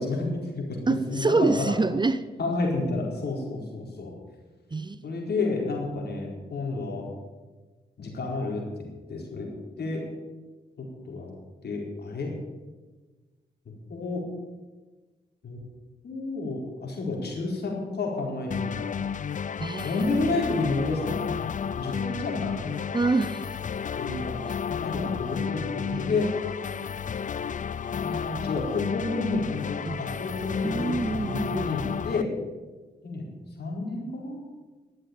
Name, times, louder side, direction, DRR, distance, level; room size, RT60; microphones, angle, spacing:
voice 1, 0.0-0.8 1.1-1.7 2.4-4.1 5.0-7.1 8.0-9.5 9.8-10.1 11.1-11.3 11.6-12.3 13.9-14.2 15.4-15.6 16.0-19.0 19.8-21.3 21.8-22.7 24.0-24.4 24.8-26.3 27.9-32.3 33.0-33.2 33.6-34.4, left 3 dB, 65° left, -1 dB, 4.4 m, -30 dB
voice 2, 0.9-2.2 4.7-5.0 19.6-19.9 22.9-23.5 25.9-26.1 29.8-30.0 30.6-31.8, right 3 dB, 25° right, 14 dB, 0.6 m, -26 dB
sound 1, 18.5-32.2, left 7 dB, 45° left, 0.5 m, -32 dB
12.5 x 7.7 x 9.0 m, 1.3 s
cardioid pair, 60°, 18 cm